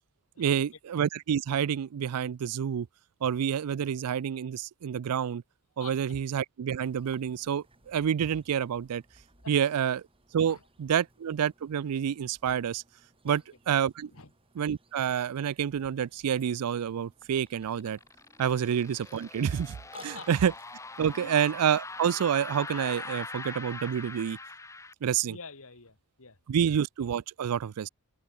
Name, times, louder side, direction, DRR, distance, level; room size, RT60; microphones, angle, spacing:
voice 1, 0.4-2.9 3.2-5.4 5.8-9.0 9.5-10.0 10.3-12.8 13.2-13.4 13.7-14.1 14.6-18.0 18.4-19.8 20.0-20.5 21.0-24.4 25.0-25.4 26.5-27.9, right 8 dB, 85° right, 0.4 m, -28 dB
Burping eructation, 6.9-22.8, right 3 dB, 25° right, 5.2 m, -60 dB
sound 1, 17.2-24.9, left 3 dB, 15° left, 0.9 m, -42 dB
voice 2, 19.9-20.3 21.1-21.4 25.3-26.4, left 4 dB, 65° left, 3.2 m, -47 dB
open air
head